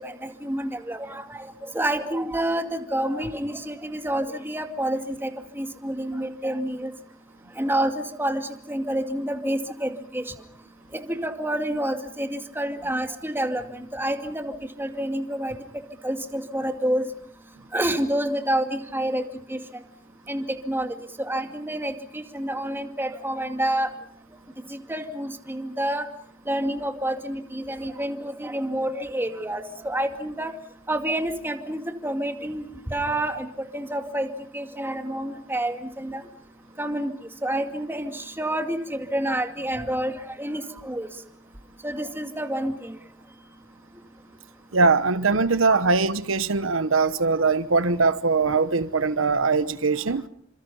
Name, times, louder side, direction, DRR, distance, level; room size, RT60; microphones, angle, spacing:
voice 1, 0.0-6.9 7.5-10.3 10.9-17.1 17.7-19.6 20.3-23.9 24.7-26.1 26.5-30.5 30.9-33.5 33.7-34.3 34.5-36.3 36.8-37.1 37.4-41.1 41.8-43.0 45.7-45.8, right 1 dB, 10° right, 2.3 m, -28 dB
voice 2, 44.7-50.2, right 4 dB, 85° right, 1.1 m, -21 dB
29.0 x 26.5 x 5.5 m
head